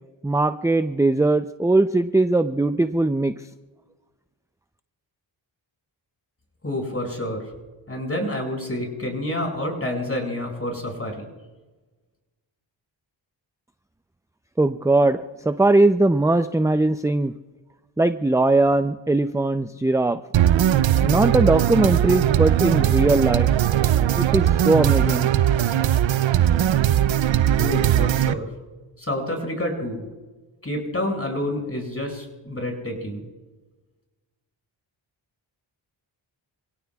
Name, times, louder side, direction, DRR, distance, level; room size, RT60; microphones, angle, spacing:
voice 1, 0.2-3.3 14.6-17.3 18.0-20.2 21.0-23.5 24.2-25.3, right 2 dB, 5° right, 10 dB, 0.5 m, -20 dB
voice 2, 6.6-7.5 7.9-11.3 27.5-28.5 29.0-30.1 30.6-33.3, left 1 dB, 30° left, 1 dB, 6.2 m, -28 dB
sound 1, 20.3-28.3, right 11 dB, 70° right, 0.7 m, -19 dB
27.5 x 17.5 x 2.4 m, 1.3 s
cardioid pair, 50°, 47 cm